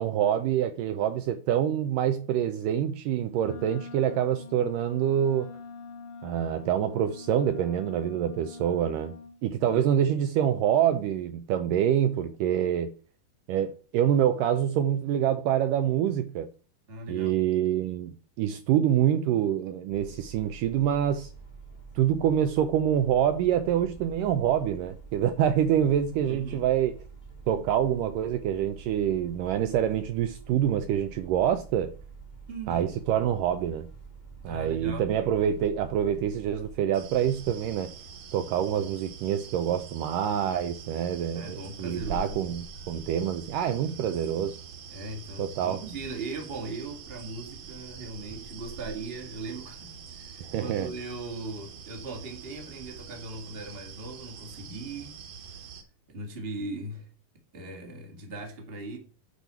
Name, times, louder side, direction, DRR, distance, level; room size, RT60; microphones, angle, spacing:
voice 1, 0.0-5.5 6.2-9.1 9.4-12.9 13.5-16.5 17.1-21.3 22.0-27.0 27.5-31.9 32.7-33.9 34.4-37.9 38.3-44.6 45.4-45.8 50.4-50.9, right 10 dB, 85° right, 1.9 m, -26 dB
Wind instrument woodwind instrument, 3.4-9.4, left 5 dB, 70° left, 1.9 m, -44 dB
voice 2, 9.6-10.2 16.9-17.4 26.2-26.7 32.5-32.9 34.4-35.1 41.3-42.6 43.8-43.9 44.9-55.2 56.1-57.1 57.5-59.0, right 2 dB, 40° right, 0.8 m, -39 dB
sound 1, 19.9-36.8, right 5 dB, 35° left, 0.6 m, -47 dB
sound 2, 36.9-55.8, right 5 dB, 70° right, 3.3 m, -44 dB
10.0 x 4.4 x 6.8 m
omnidirectional pair, 4.6 m